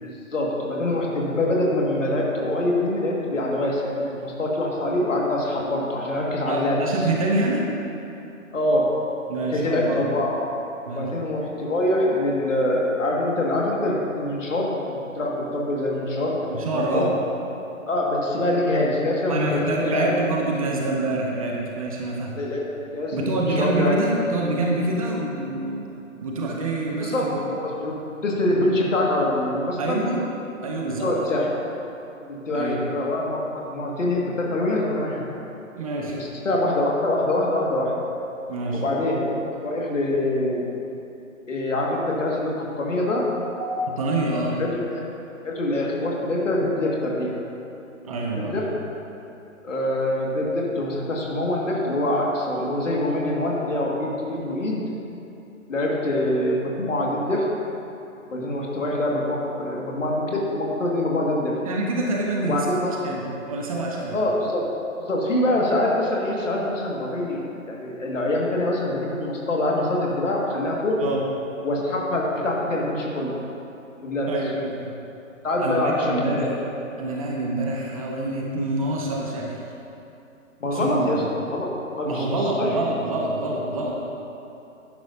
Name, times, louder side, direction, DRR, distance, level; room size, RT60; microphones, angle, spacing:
voice 1, 0.0-6.8 8.5-8.9 9.5-10.3 10.9-16.4 16.7-17.1 17.9-20.1 22.4-22.6 22.9-24.0 27.0-27.3 27.5-28.0 28.2-30.0 31.0-31.5 32.3-35.3 36.2-37.9 38.7-40.7 41.5-43.3 44.6-45.0 45.4-47.4 48.0-48.7 49.6-54.8 55.7-57.5 58.3-61.6 62.4-62.9 64.1-64.6 65.0-71.0 71.6-73.3 74.0-74.3 75.4-76.6 80.6-81.7 82.0-82.7, left 1 dB, 65° left, -2 dB, 2.0 m, -24 dB
voice 2, 6.5-7.6 9.3-10.0 10.9-11.1 16.5-17.1 19.3-22.3 23.1-25.9 26.2-27.4 29.8-30.2 30.6-31.1 32.5-32.8 35.8-36.1 38.5-38.8 43.6-44.6 48.0-48.6 61.6-62.7 63.0-64.2 71.0-71.2 74.3-74.9 75.6-76.5 77.0-79.6 80.7-81.3 82.0-84.0, right 2 dB, 25° right, -2 dB, 0.9 m, -26 dB
12.0 x 10.5 x 2.7 m, 2.9 s
figure-of-eight pair, 140°, 41 cm